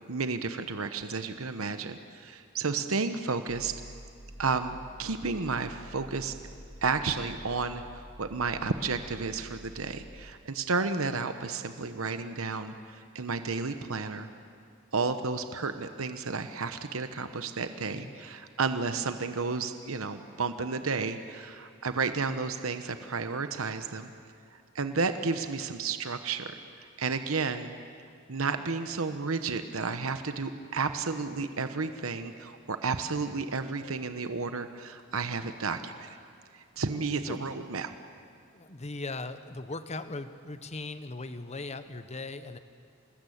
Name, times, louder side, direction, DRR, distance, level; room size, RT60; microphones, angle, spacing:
voice 1, 0.1-3.7 4.4-6.3 6.8-14.3 14.9-24.1 24.7-27.7 28.3-36.2 36.5-37.9, right 4 dB, 70° right, 9 dB, 1.0 m, -32 dB
sound 1, 3.5-10.3, equal, 5° right, 2.5 m, -48 dB
voice 2, 17.9-18.2 37.2-37.4 38.5-42.6, left 2 dB, 30° left, 11 dB, 1.1 m, -39 dB
27.5 x 19.5 x 8.7 m, 2.3 s
head